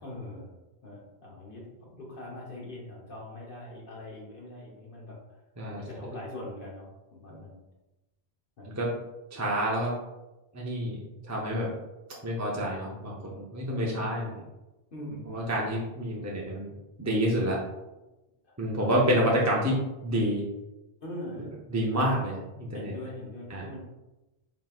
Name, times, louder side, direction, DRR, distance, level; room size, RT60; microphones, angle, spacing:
voice 1, 0.0-0.5 0.8-5.4 5.7-7.6 8.6-8.7 14.9-15.4 18.4-18.5 21.0-21.5 22.7-23.8, left 1 dB, 60° left, -4 dB, 1.1 m, -42 dB
voice 2, 9.3-10.0 10.5-11.7 12.2-14.4 15.3-16.7 17.0-17.6 18.6-20.5 21.7-22.9 23.5-23.6, equal, 25° right, -3 dB, 0.4 m, -28 dB
4.0 x 3.7 x 2.3 m, 1.0 s
omnidirectional pair, 1.0 m